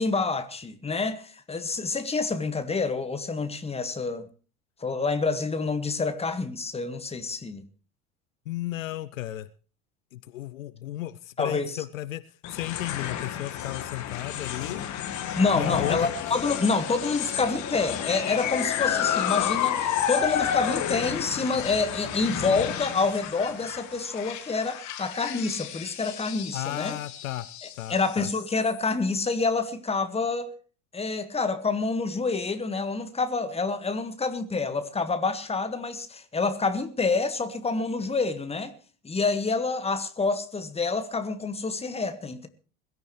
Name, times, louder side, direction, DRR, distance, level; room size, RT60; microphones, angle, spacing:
voice 1, 0.0-4.3 4.8-7.6 11.4-11.8 15.4-27.0 27.9-30.6 30.9-38.7 39.0-42.5, left 4 dB, 15° left, 1.7 m, -27 dB
voice 2, 8.5-9.5 10.1-14.8 15.5-16.1 26.5-27.5 27.7-28.3, left 14 dB, 65° left, 0.7 m, -34 dB
sound 1, 12.4-28.9, left 10 dB, 40° left, 1.7 m, -31 dB
21.5 x 13.5 x 3.2 m
figure-of-eight pair, 70°, 42 cm